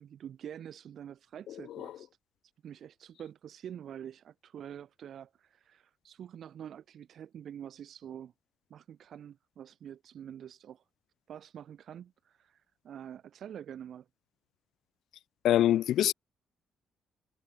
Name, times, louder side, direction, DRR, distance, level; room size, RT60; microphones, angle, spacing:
voice 1, 0.0-2.1 2.6-8.3 8.7-10.8 11.3-14.1, right 9 dB, 65° right, 2.9 m, -46 dB
voice 2, 15.4-16.1, left 12 dB, 80° left, 0.4 m, -23 dB
cardioid pair, 90°, 0 cm